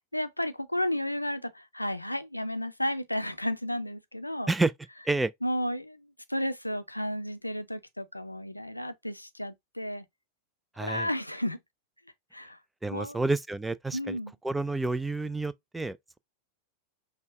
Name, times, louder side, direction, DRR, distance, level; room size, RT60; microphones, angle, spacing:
voice 1, 0.1-4.5 5.4-10.0 10.8-11.6 12.3-12.6 12.9-13.2 13.9-14.3, left 1 dB, 85° left, 0.5 m, -33 dB
voice 2, 10.8-11.1 12.8-14.2 14.4-16.2, right 2 dB, 5° right, 0.3 m, -29 dB
5.5 x 2.2 x 3.5 m
figure-of-eight pair, 90°, 0 cm